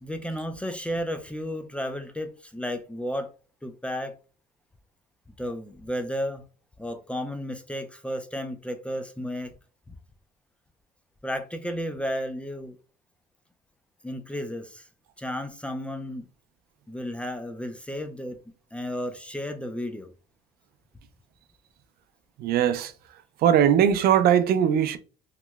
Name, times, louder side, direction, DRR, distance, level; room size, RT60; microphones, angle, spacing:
voice 1, 0.0-3.3 3.6-4.1 5.4-6.4 6.8-9.5 9.9-10.0 11.2-12.8 14.0-14.9 15.2-16.3 16.9-18.4 18.7-20.1, equal, 5° left, 0.4 m, -33 dB
voice 2, 22.4-22.9 23.4-25.0, right 9 dB, 65° right, 0.4 m, -20 dB
3.0 x 2.9 x 2.2 m
cardioid pair, 110°, 17 cm